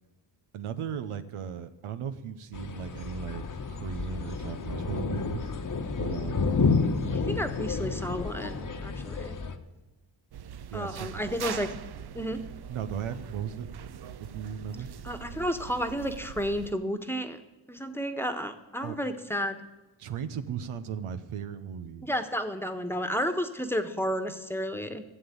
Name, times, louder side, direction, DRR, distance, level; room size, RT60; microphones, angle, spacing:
voice 1, 0.5-5.5 6.0-6.6 10.7-11.1 12.7-13.7 14.2-14.9 18.8-19.0 20.0-22.1, right 8 dB, 85° right, 10 dB, 0.8 m, -37 dB
sound 1, 2.5-9.6, left 4 dB, 40° left, 1.1 m, -30 dB
voice 2, 7.1-9.4 10.7-11.7 12.1-12.4 15.0-17.4 17.7-19.6 22.0-25.0, equal, 5° left, 7 dB, 1.2 m, -32 dB
sound 2, 10.3-16.7, right 8 dB, 50° right, 0.6 m, -42 dB
13.0 x 7.2 x 8.5 m, 1.1 s
cardioid pair, 45°, 49 cm